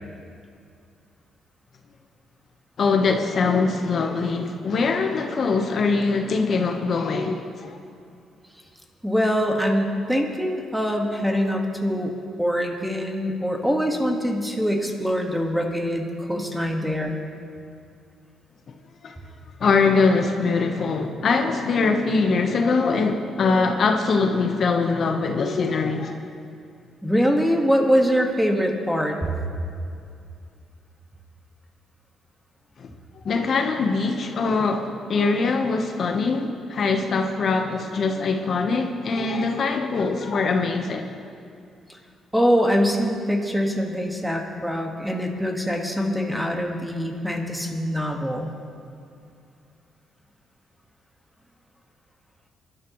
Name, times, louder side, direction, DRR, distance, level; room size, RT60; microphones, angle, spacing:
voice 1, 2.8-7.8 19.0-19.1 19.6-26.1 32.8-32.9 33.2-41.1, left 4 dB, 55° left, 4 dB, 1.1 m, -22 dB
voice 2, 9.0-12.1 12.4-17.2 27.0-29.4 41.9-42.0 42.3-48.5, equal, 5° right, 2 dB, 1.7 m, -23 dB
22.5 x 12.0 x 3.1 m, 2.5 s
cardioid pair, 90°, 0 cm